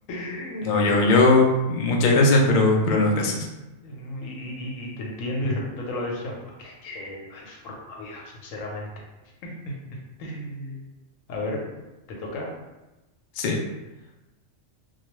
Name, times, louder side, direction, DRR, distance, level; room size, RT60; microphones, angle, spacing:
voice 1, 0.1-1.2 3.8-8.9 9.4-9.7 10.2-10.8 11.3-11.6 12.1-12.5, left 1 dB, 85° left, -1 dB, 1.0 m, -34 dB
voice 2, 0.6-3.5 13.4-13.6, left 2 dB, 70° left, -1 dB, 0.4 m, -19 dB
2.3 x 2.3 x 3.0 m, 1.0 s
omnidirectional pair, 1.4 m